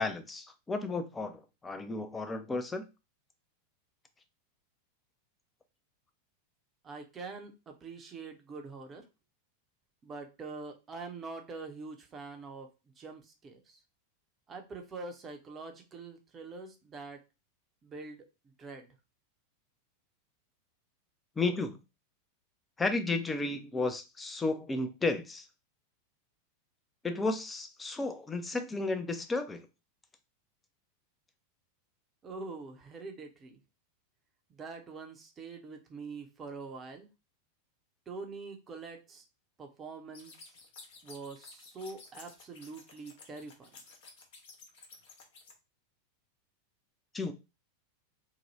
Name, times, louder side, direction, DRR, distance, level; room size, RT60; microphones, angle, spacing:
voice 1, 0.0-2.9 21.4-21.8 22.8-25.5 27.0-29.7 47.1-47.3, left 3 dB, 15° left, 0.5 m, -33 dB
voice 2, 6.8-9.1 10.0-12.7 13.0-13.8 14.5-17.2 17.8-18.9 32.2-33.6 34.5-37.1 38.1-39.2 39.6-40.3 41.0-43.7, right 3 dB, 25° right, 0.7 m, -44 dB
sound 1, 40.1-45.5, left 4 dB, 60° left, 0.8 m, -53 dB
2.8 x 2.2 x 3.1 m
figure-of-eight pair, 90°, 0 cm